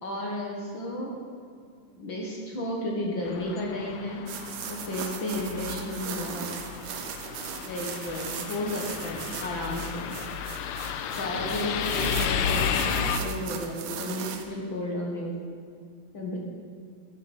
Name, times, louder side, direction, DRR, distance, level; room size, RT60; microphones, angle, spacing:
voice 1, 0.0-1.1 2.0-4.2 4.7-6.4 7.6-10.1 11.1-15.3 16.1-16.4, left 1 dB, 45° left, -2 dB, 1.7 m, -33 dB
sound 1, 3.3-13.2, left 8 dB, 85° left, 2.3 m, -32 dB
sound 2, 4.3-14.4, right 7 dB, 75° right, 2.5 m, -38 dB
11.5 x 7.6 x 7.5 m, 2.2 s
omnidirectional pair, 3.9 m